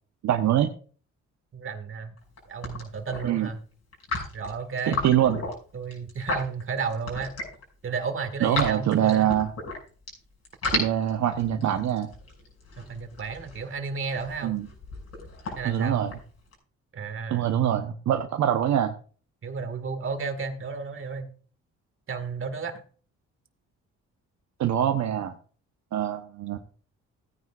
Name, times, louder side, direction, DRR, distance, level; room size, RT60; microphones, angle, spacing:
voice 1, 0.2-0.7 3.2-3.5 4.9-5.4 8.4-9.5 10.7-12.1 14.4-14.7 15.6-16.1 17.3-18.9 24.6-25.3 25.9-26.6, right 10 dB, 65° right, 5 dB, 1.0 m, -24 dB
voice 2, 1.5-2.1 2.5-3.6 4.3-5.0 5.7-7.4 7.8-9.3 12.8-14.6 15.5-16.0 16.9-17.5 19.4-21.3 22.1-22.8, right 5 dB, 45° right, 8 dB, 1.9 m, -33 dB
sound 1, 2.2-2.4 2.6-3.3 3.9-7.6 8.0-10.1 10.4-16.5, left 3 dB, 55° left, 6.2 m, -33 dB
17.0 x 9.4 x 2.4 m, 0.41 s
cardioid pair, 90°, 30 cm